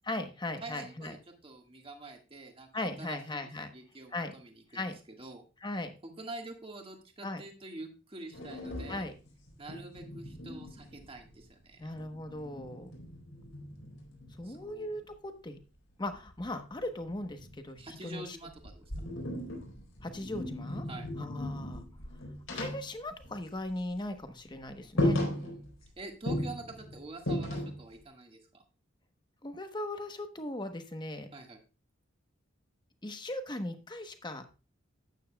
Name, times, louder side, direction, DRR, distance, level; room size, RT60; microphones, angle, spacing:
voice 1, 0.0-1.2 2.7-3.7 4.1-4.3 4.7-5.0 5.6-5.9 7.2-7.4 8.9-9.1 11.8-12.9 14.4-15.6 16.0-18.4 20.0-20.8 21.2-21.8 22.5-25.2 29.4-31.3 33.0-34.5, left 1 dB, 20° left, 7 dB, 1.0 m, -38 dB
voice 2, 0.6-5.4 6.0-9.1 9.6-11.9 14.4-15.0 17.8-18.8 20.9-21.1 25.1-25.7 26.0-28.6 31.3-31.6, right 2 dB, 30° right, 3 dB, 1.7 m, -46 dB
sound 1, 8.3-11.5 11.8-14.7 16.1-18.1 18.5-23.8 24.1-24.3 24.6-24.7 25.0-25.9 26.3-28.0, left 1 dB, 80° left, 3.9 m, -37 dB
12.5 x 9.1 x 2.3 m, 0.31 s
head